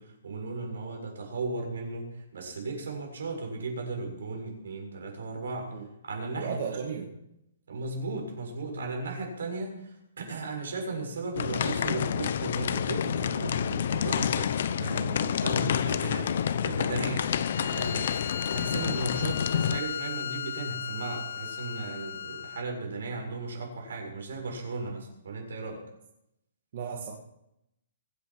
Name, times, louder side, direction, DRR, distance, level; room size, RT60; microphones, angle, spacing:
voice 1, 0.0-5.7 6.0-6.6 6.9-7.1 7.7-16.4 16.6-25.8, right 3 dB, 70° right, 1 dB, 7.1 m, -36 dB
voice 2, 6.4-7.1 26.7-27.1, right 6 dB, 40° right, -1 dB, 2.1 m, -34 dB
sound 1, 11.4-19.8, left 8 dB, 45° left, 0.8 m, -29 dB
Bowed string instrument, 17.3-22.7, left 8 dB, 65° left, 1.2 m, -37 dB
23.5 x 9.6 x 6.1 m, 0.83 s
hypercardioid pair, 175°, 0 cm